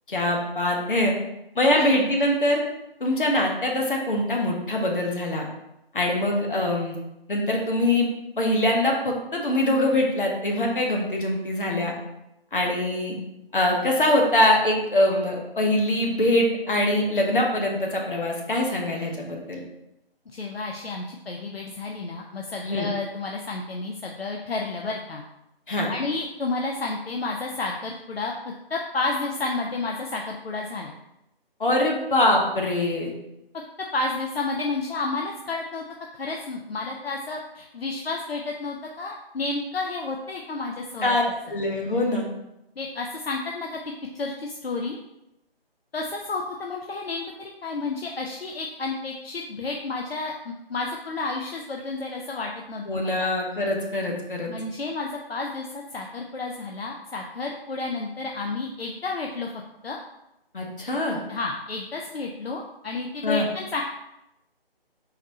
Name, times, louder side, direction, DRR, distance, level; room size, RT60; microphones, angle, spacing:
voice 1, 0.1-1.1 1.5-2.6 3.0-5.5 5.9-6.9 7.3-8.1 8.4-11.9 12.5-13.1 13.5-19.6 22.6-22.9 25.7-25.9 31.6-33.1 41.0-42.2 52.9-54.5 60.5-61.2 63.2-63.5, left 1 dB, 60° left, 0 dB, 1.0 m, -23 dB
voice 2, 20.3-25.2 25.9-30.9 33.9-35.8 36.1-41.2 42.8-43.8 44.1-45.0 45.9-53.3 54.5-59.5 59.8-60.0 61.3-63.8, left 3 dB, 75° left, 0 dB, 0.5 m, -31 dB
4.1 x 2.7 x 4.1 m, 0.87 s
figure-of-eight pair, 155°, 30 cm